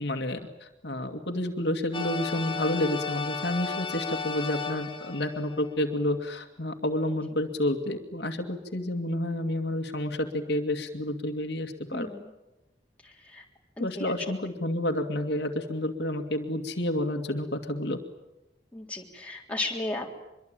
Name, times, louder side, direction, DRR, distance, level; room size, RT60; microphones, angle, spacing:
voice 1, 0.0-12.1 13.8-18.0, left 1 dB, 70° left, 4 dB, 2.3 m, -30 dB
sound 1, 1.9-5.8, left 5 dB, 25° left, 1.6 m, -34 dB
voice 2, 11.9-12.3 13.0-13.4 13.8-14.3 18.7-20.1, left 2 dB, 5° left, 0 dB, 3.6 m, -35 dB
25.0 x 23.0 x 9.1 m, 0.99 s
head